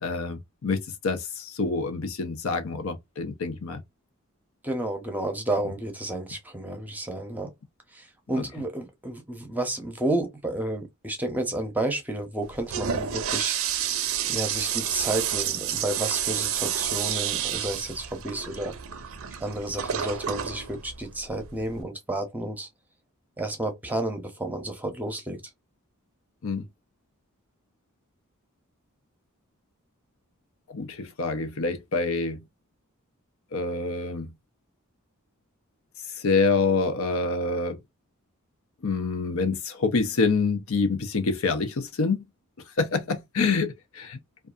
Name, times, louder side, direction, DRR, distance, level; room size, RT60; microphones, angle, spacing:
voice 1, 0.0-3.8 8.4-8.5 26.4-26.6 30.7-32.4 33.5-34.3 36.2-37.8 38.8-42.2 42.8-44.2, left 4 dB, 70° left, 0.6 m, -26 dB
voice 2, 4.6-7.5 7.9-13.9 14.3-18.7 19.4-22.7 23.4-25.4, right 1 dB, 10° right, 0.7 m, -31 dB
Toilet flush, 12.4-21.8, right 9 dB, 70° right, 0.5 m, -30 dB
2.6 x 2.4 x 2.4 m
head